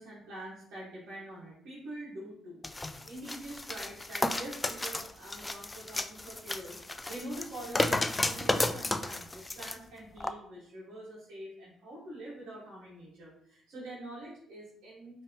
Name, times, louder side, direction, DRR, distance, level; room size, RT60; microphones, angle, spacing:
voice 1, 0.0-15.2, right 1 dB, 55° right, -8 dB, 1.7 m, -45 dB
sound 1, 2.6-9.8 10.2-10.3, left 2 dB, 20° left, 0.4 m, -33 dB
4.6 x 3.3 x 3.2 m, 0.70 s
figure-of-eight pair, 45°, 0 cm